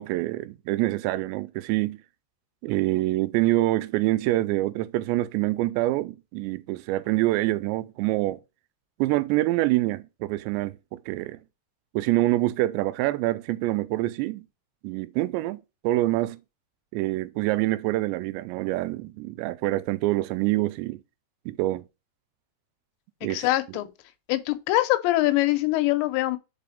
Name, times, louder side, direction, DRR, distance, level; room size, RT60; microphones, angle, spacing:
voice 1, 0.0-2.0 2.6-8.4 9.0-11.4 11.9-14.5 14.8-16.4 16.9-21.0 21.5-21.8 23.2-23.5, right 17 dB, 85° right, 2.8 m, -26 dB
voice 2, 23.3-23.9 24.3-26.4, left 17 dB, 85° left, 3.0 m, -23 dB
5.3 x 4.9 x 5.1 m
omnidirectional pair, 5.0 m